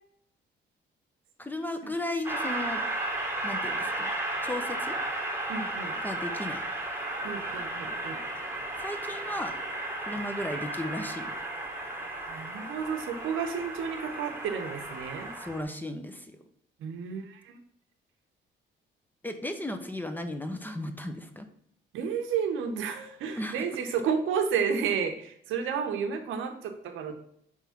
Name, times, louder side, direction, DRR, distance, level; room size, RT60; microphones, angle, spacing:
voice 1, 1.4-2.8 3.4-4.1 4.4-5.0 6.0-6.6 8.8-9.5 10.1-11.4 15.4-16.4 19.2-21.5 23.3-23.6, left 1 dB, 10° left, 7 dB, 0.7 m, -35 dB
Train, 2.2-15.6, right 2 dB, 10° right, 1.3 m, -34 dB
voice 2, 5.5-6.0 7.2-8.2 12.3-15.3 16.8-17.6 21.9-27.2, right 6 dB, 85° right, 6 dB, 0.8 m, -31 dB
4.8 x 3.7 x 5.6 m, 0.69 s
cardioid pair, 90°, 20 cm